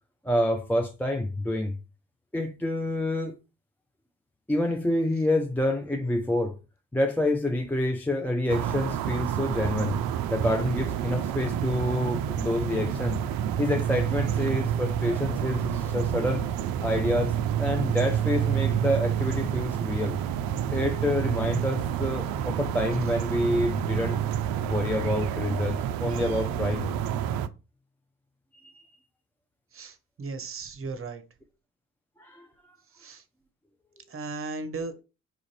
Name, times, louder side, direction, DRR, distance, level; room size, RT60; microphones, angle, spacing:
voice 1, 0.2-1.8 2.3-3.3 4.5-6.6 6.9-10.0 10.3-13.2 13.6-16.5 16.8-20.2 20.7-24.2 24.6-26.9 28.6-28.8 32.2-32.5, left 1 dB, 5° left, 0.5 m, -27 dB
sound 1, 8.5-27.5, right 10 dB, 55° right, 0.5 m, -29 dB
voice 2, 29.7-31.2 32.9-33.2 34.1-34.9, right 3 dB, 30° right, 0.9 m, -36 dB
4.9 x 2.5 x 3.2 m
hypercardioid pair, 50°, 44 cm